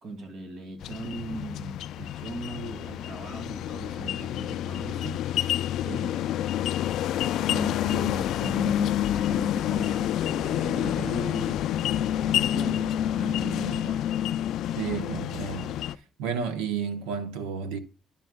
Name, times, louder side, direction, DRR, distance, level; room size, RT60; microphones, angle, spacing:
voice 1, 0.0-5.6 5.8-6.5 7.4-11.9 12.2-14.1, right 2 dB, 60° right, 2.3 m, -38 dB
sound 1, 0.8-16.0, left 11 dB, 75° left, 0.3 m, -28 dB
voice 2, 14.8-15.7 16.2-17.8, right 6 dB, 90° right, 0.9 m, -31 dB
12.0 x 7.0 x 2.2 m
supercardioid pair, 75°, 0 cm